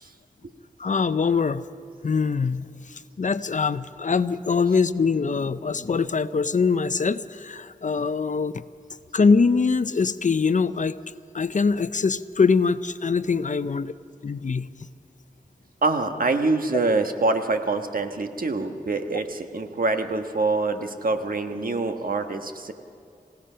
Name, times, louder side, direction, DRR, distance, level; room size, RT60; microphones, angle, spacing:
voice 1, 0.8-1.6 2.0-2.7 3.2-8.5 9.1-10.9 11.3-13.9 14.2-14.7, left 5 dB, 55° left, 13 dB, 0.7 m, -23 dB
voice 2, 15.8-22.7, right 3 dB, 70° right, 6 dB, 1.4 m, -25 dB
27.5 x 16.5 x 5.7 m, 2.4 s
wide cardioid pair, 65°, 15 cm